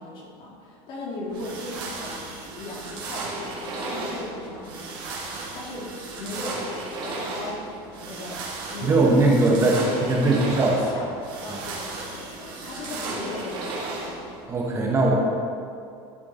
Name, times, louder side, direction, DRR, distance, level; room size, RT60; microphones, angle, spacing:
voice 1, 0.0-5.2 5.5-8.4 8.7-11.1 11.4-14.2, left 2 dB, 40° left, -3 dB, 2.3 m, -37 dB
sound 1, 1.3-14.5, right 3 dB, 40° right, 2.2 m, -35 dB
voice 2, 8.8-10.8 14.5-15.2, right 2 dB, 20° right, -2 dB, 1.2 m, -20 dB
12.0 x 6.2 x 4.3 m, 2.4 s
cardioid pair, 150°, 13 cm